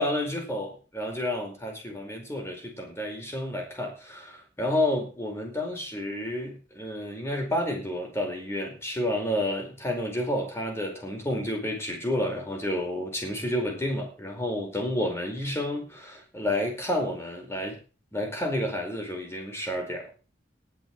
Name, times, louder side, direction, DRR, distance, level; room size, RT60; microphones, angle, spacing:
voice 1, 0.0-17.8 18.1-20.1, left 1 dB, 15° left, 1 dB, 5.0 m, -30 dB
19.0 x 6.4 x 6.2 m, 0.35 s
head